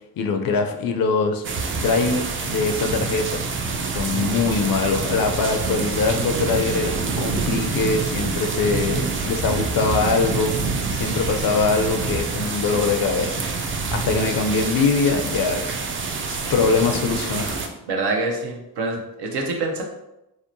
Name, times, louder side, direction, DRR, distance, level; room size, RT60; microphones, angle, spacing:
voice 1, 0.2-1.5 1.8-3.4 3.9-10.6 10.9-13.5 13.9-15.7 16.3-17.6, left 4 dB, 55° left, 5 dB, 0.5 m, -22 dB
sound 1, 1.4-17.7, right 4 dB, 30° right, 0.4 m, -26 dB
voice 2, 17.9-19.8, right 3 dB, 70° right, 1 dB, 0.6 m, -26 dB
2.7 x 2.0 x 2.5 m, 0.93 s
supercardioid pair, 45°, 41 cm